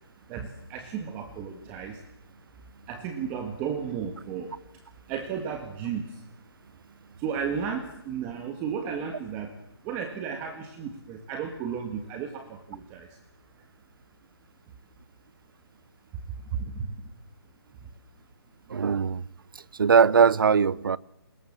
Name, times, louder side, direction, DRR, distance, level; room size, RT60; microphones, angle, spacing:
voice 1, 0.3-2.0 2.9-4.5 5.1-6.1 7.2-9.5 9.8-13.1 16.6-16.9, right 7 dB, 15° right, 1.5 m, -34 dB
voice 2, 18.7-19.2 19.8-21.0, right 6 dB, 55° right, 0.8 m, -20 dB
29.0 x 21.5 x 7.4 m
hypercardioid pair, 170°, 14 cm